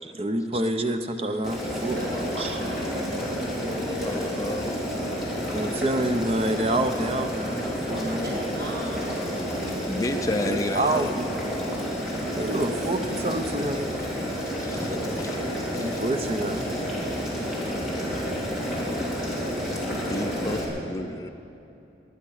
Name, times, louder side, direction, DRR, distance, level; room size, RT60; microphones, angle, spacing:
voice 1, 0.1-2.0 2.4-2.5 5.5-7.6 7.9-8.2 10.5-11.3 12.2-13.9 15.8-16.6, right 1 dB, 35° right, 7 dB, 0.8 m, -27 dB
voice 2, 1.3-1.6 1.9-4.5 8.1-10.1 14.6-15.1, equal, 70° right, -5 dB, 3.2 m, -36 dB
Boiling, 1.4-20.6, equal, ahead, 3.2 m, -30 dB
voice 3, 3.8-5.7 7.1-8.1 9.9-11.1 14.6-14.8 15.2-15.3 15.7-16.0 20.1-21.3, left 2 dB, 20° left, 6 dB, 0.5 m, -33 dB
20.5 x 10.0 x 6.5 m, 2.7 s
head